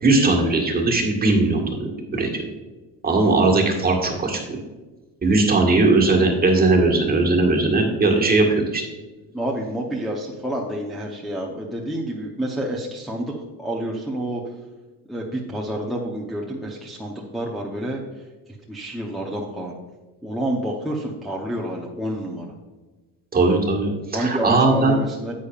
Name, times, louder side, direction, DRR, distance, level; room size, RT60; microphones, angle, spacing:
voice 1, 0.0-2.5 3.0-4.4 5.2-8.8 23.3-24.9, right 3 dB, 25° right, 0 dB, 1.6 m, -19 dB
voice 2, 9.3-13.3 13.6-14.5 15.1-18.3 18.7-19.7 20.2-22.5 24.1-25.3, right 1 dB, ahead, -4 dB, 0.8 m, -28 dB
10.0 x 8.4 x 2.4 m, 1.2 s
cardioid pair, 140°, 36 cm